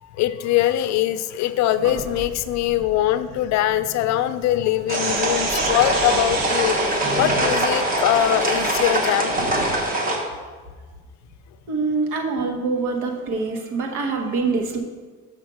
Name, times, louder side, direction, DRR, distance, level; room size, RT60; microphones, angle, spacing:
voice 1, 0.0-9.3, left 12 dB, 65° left, 12 dB, 0.4 m, -22 dB
Sink (filling or washing), 1.8-9.8, right 3 dB, 60° right, 0.9 m, -32 dB
sound 1, 4.9-10.2, right 1 dB, 30° right, 1.1 m, -23 dB
voice 2, 11.7-14.8, right 4 dB, 80° right, 3 dB, 1.3 m, -24 dB
6.5 x 5.1 x 6.1 m, 1.4 s
cardioid pair, 165°, 30 cm